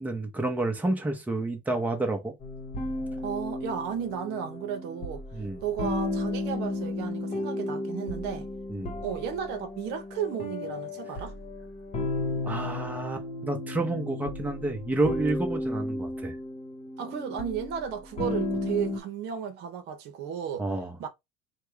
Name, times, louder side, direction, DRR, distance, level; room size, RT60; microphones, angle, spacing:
voice 1, 0.0-2.3 5.3-5.6 8.7-9.0 12.4-16.3 20.6-21.0, right 2 dB, 10° right, 0.8 m, -30 dB
sound 1, 2.4-19.0, left 2 dB, 35° left, 1.1 m, -34 dB
voice 2, 3.2-5.2 5.6-8.5 9.0-11.4 17.0-20.6 21.0-21.1, right 8 dB, 60° right, 0.8 m, -34 dB
3.4 x 2.2 x 3.2 m
supercardioid pair, 110°, 20 cm